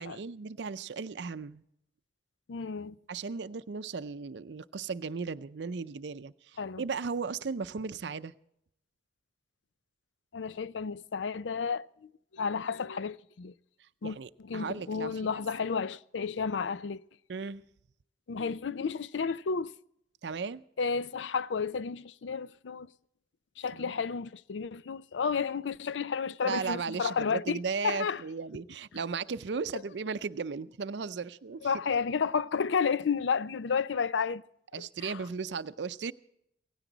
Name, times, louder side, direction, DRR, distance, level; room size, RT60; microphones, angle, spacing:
voice 1, 0.0-1.6 3.1-8.3 14.0-15.4 17.3-17.6 20.2-20.6 23.8-23.9 26.4-31.6 34.7-36.1, right 5 dB, 70° right, 0.5 m, -36 dB
voice 2, 2.5-3.0 6.6-6.8 10.3-13.5 14.0-14.2 14.4-17.0 18.3-19.7 20.8-22.9 23.6-27.6 27.8-28.2 31.6-34.4 34.7-35.2, left 5 dB, 90° left, 0.5 m, -32 dB
17.0 x 16.0 x 3.9 m
head